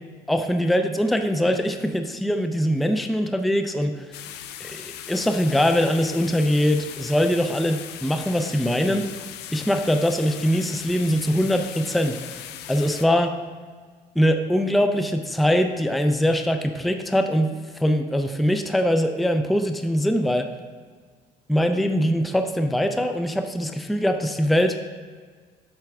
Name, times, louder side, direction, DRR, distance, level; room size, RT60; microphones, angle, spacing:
voice 1, 0.3-4.2 4.6-9.1 9.5-13.4 14.2-20.5 21.5-24.8, equal, ahead, 6 dB, 0.4 m, -22 dB
sound 1, 4.1-13.0, left 10 dB, 85° left, 0.5 m, -39 dB
8.0 x 5.7 x 3.5 m, 1.5 s
cardioid pair, 110°, 17 cm